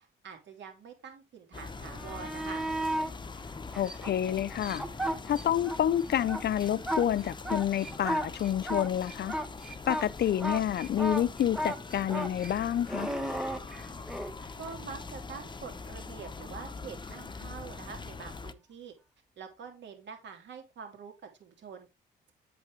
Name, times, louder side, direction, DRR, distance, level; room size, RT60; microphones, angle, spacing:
voice 1, 0.2-2.6 14.6-18.9 19.4-21.1 21.4-21.9, right 6 dB, 65° right, 2.8 m, -45 dB
sound 1, 1.5-18.5, left 4 dB, 25° left, 0.8 m, -43 dB
sound 2, 1.9-3.1 3.7-5.8 6.1-14.3 17.1-17.2, right 1 dB, ahead, 1.4 m, -34 dB
voice 2, 3.8-4.8 5.3-9.4 9.9-13.1, left 10 dB, 55° left, 0.6 m, -28 dB
8.3 x 7.0 x 3.4 m
cardioid pair, 90°, 20 cm